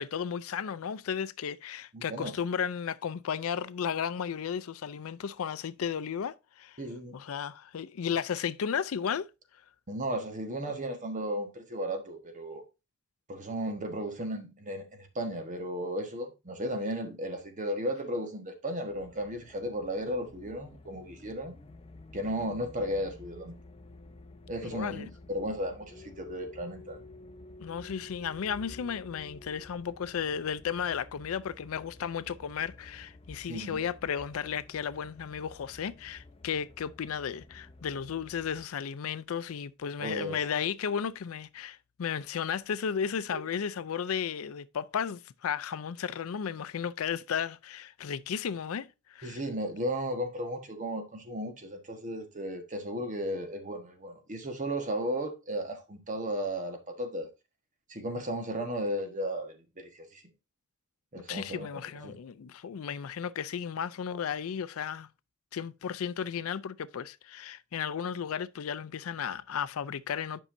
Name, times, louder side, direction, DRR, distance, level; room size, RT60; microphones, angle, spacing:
voice 1, 0.0-6.8 7.1-9.3 24.6-25.1 27.6-49.4 61.3-65.1 65.5-70.4, left 7 dB, 75° left, 0.4 m, -34 dB
voice 2, 1.9-2.3 6.8-7.2 9.9-12.6 13.3-21.5 22.1-23.6 24.5-25.0 25.3-27.1 33.5-33.8 40.0-40.4 43.3-43.4 49.2-57.3 57.9-60.2 61.1-61.7 62.0-62.1, equal, 35° right, 1.3 m, -35 dB
sound 1, 18.9-38.6, left 2 dB, 30° left, 0.6 m, -51 dB
10.0 x 5.4 x 2.6 m
head